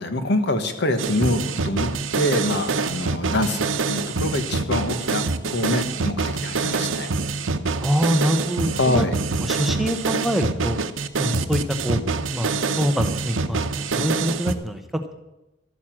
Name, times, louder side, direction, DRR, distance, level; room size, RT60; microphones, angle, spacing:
voice 1, 0.0-7.1 8.7-9.1, left 1 dB, 60° left, 8 dB, 1.4 m, -25 dB
sound 1, 1.0-14.5, right 4 dB, 85° right, 0.8 m, -25 dB
voice 2, 7.8-9.1 9.4-10.8 11.2-15.1, equal, ahead, 6 dB, 0.8 m, -25 dB
12.5 x 9.3 x 7.5 m, 0.96 s
head